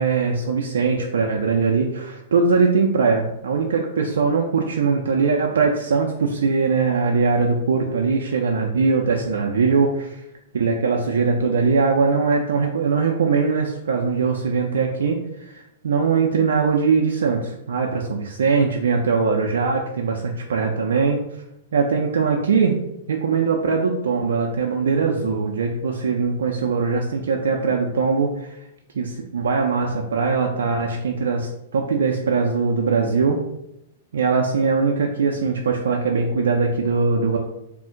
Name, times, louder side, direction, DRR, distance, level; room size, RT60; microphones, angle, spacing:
voice 1, 0.0-10.2 10.5-21.2 21.7-22.8 23.1-28.6 29.0-33.4 34.1-37.4, right 5 dB, 75° right, 1 dB, 0.3 m, -21 dB
2.5 x 2.0 x 3.7 m, 0.82 s
hypercardioid pair, 115°, 0 cm